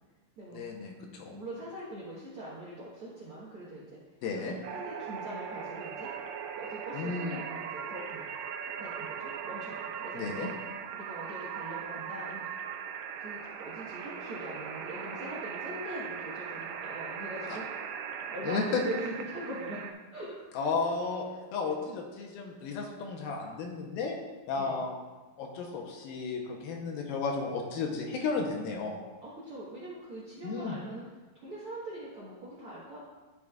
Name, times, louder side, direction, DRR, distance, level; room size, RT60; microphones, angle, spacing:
voice 1, 0.5-1.4 4.2-4.6 6.9-7.4 10.1-10.5 18.4-18.8 20.6-21.3 21.5-24.1 24.5-25.0 25.4-29.0 30.4-30.8, left 4 dB, 75° left, 1 dB, 2.5 m, -33 dB
voice 2, 1.3-4.0 4.3-6.1 6.6-8.3 8.6-10.5 10.9-12.5 13.2-17.9 18.3-20.4 20.8-20.9 21.7-21.8 24.5-24.8 29.2-31.1 31.4-33.0, right 1 dB, 65° right, -8 dB, 1.3 m, -42 dB
sound 1, 4.6-19.9, right 7 dB, 90° right, 1.9 m, -39 dB
12.0 x 6.3 x 2.4 m, 1.2 s
omnidirectional pair, 4.5 m